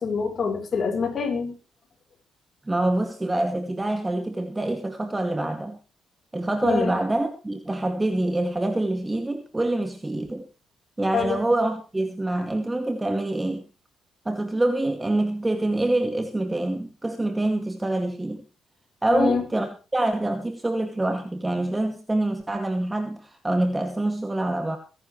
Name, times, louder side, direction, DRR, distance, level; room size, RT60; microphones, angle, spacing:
voice 1, 0.0-1.6 6.6-7.0 11.1-11.4 19.1-19.5, left 5 dB, 45° left, 5.3 m, -25 dB
voice 2, 2.7-5.8 6.3-10.4 11.0-13.6 14.3-18.4 19.0-24.8, right 1 dB, 15° right, 2.3 m, -25 dB
23.0 x 11.0 x 3.3 m
cardioid pair, 90°, 0 cm